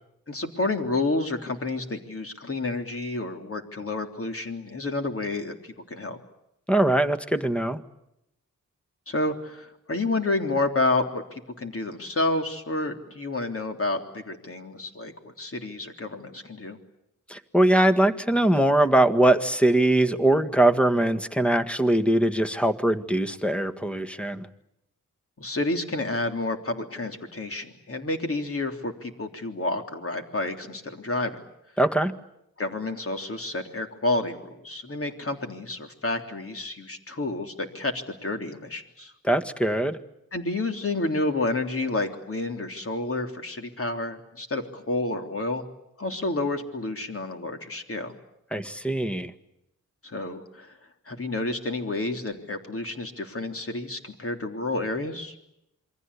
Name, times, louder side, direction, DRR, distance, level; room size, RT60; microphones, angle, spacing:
voice 1, 0.3-6.2 9.1-16.8 25.4-31.4 32.6-39.1 40.3-45.6 46.0-48.2 50.0-50.8 51.1-55.3, left 2 dB, 45° left, 5 dB, 3.5 m, -30 dB
voice 2, 6.7-7.8 17.3-24.5 31.8-32.1 39.2-40.0 48.5-49.3, right 1 dB, 5° left, 9 dB, 1.6 m, -22 dB
28.0 x 23.5 x 8.4 m, 0.83 s
wide cardioid pair, 100°, 32 cm